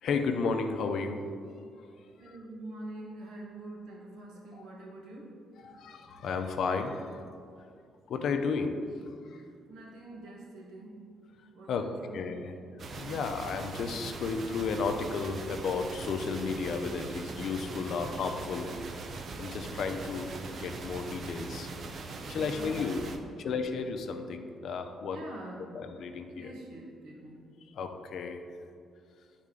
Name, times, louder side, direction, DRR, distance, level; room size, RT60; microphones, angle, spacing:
voice 1, 0.0-1.3 5.6-7.3 8.1-8.9 11.7-12.5 12.9-18.8 19.4-21.7 22.1-23.0 23.4-25.2 25.7-26.5 27.7-28.4, left 4 dB, 70° left, 6 dB, 0.5 m, -33 dB
voice 2, 2.2-5.3 9.7-11.0 11.5-12.2 22.3-23.5 25.1-25.8 26.4-27.4, right 2 dB, 80° right, -2 dB, 1.3 m, -45 dB
sound 1, 12.8-23.2, right 3 dB, 55° right, 0.6 m, -41 dB
9.3 x 4.2 x 3.7 m, 2.3 s
cardioid pair, 90°, 0 cm